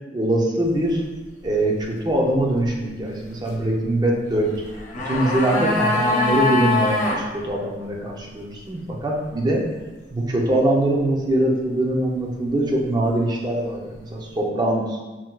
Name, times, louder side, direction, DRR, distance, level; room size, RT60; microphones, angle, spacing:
voice 1, 0.1-1.0 1.4-4.6 5.0-9.6 10.1-15.0, right 1 dB, 25° right, -1 dB, 0.4 m, -22 dB
sound 1, 4.6-7.2 7.5-7.6, left 2 dB, 45° left, 0.5 m, -22 dB
4.3 x 2.1 x 2.2 m, 1.2 s
head